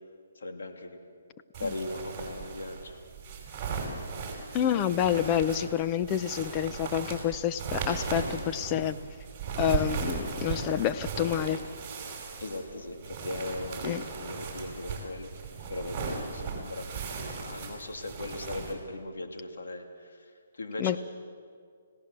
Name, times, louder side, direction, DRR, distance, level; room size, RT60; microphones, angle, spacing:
voice 1, 0.4-1.0 1.6-3.0 12.4-15.3 15.7-19.8 20.6-21.0, left 2 dB, 85° left, 3 dB, 2.7 m, -38 dB
sound 1, 1.5-18.7, right 5 dB, 20° right, 5.0 m, -37 dB
voice 2, 4.5-9.0 9.6-11.6 13.8-14.0 20.8-21.0, left 10 dB, 20° left, 12 dB, 0.6 m, -28 dB
30.0 x 17.0 x 6.8 m, 2.2 s
hypercardioid pair, 165°, 0 cm